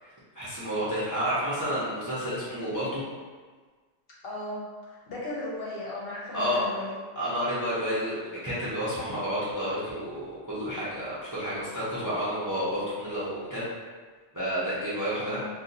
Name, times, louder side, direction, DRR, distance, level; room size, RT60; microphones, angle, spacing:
voice 1, 0.0-3.0 6.3-6.6 7.2-13.6 14.3-15.4, equal, 20° right, -10 dB, 0.6 m, -30 dB
voice 2, 4.2-7.0 15.2-15.5, left 1 dB, 55° left, -6 dB, 0.9 m, -36 dB
2.7 x 2.3 x 3.9 m, 1.5 s
omnidirectional pair, 1.2 m